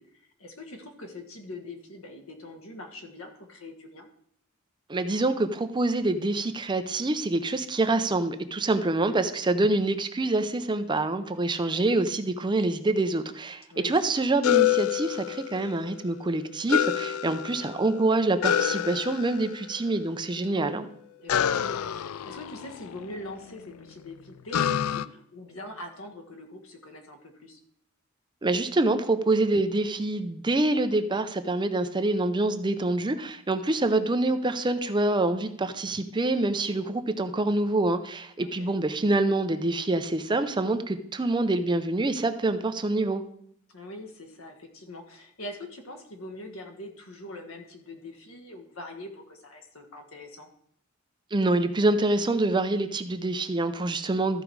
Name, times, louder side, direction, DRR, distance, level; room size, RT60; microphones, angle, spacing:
voice 1, 0.0-4.1 13.7-13.9 20.4-20.8 21.2-27.6 38.4-38.7 43.7-50.5, left 1 dB, 75° left, 4 dB, 1.5 m, -43 dB
voice 2, 4.9-20.9 28.4-43.2 51.3-54.4, right 2 dB, 20° right, 9 dB, 0.5 m, -26 dB
sound 1, 14.4-15.9 16.7-17.9 18.4-19.6 21.3-23.4 24.5-25.0, left 10 dB, 90° left, 0.4 m, -27 dB
14.0 x 5.0 x 4.7 m, 0.69 s
head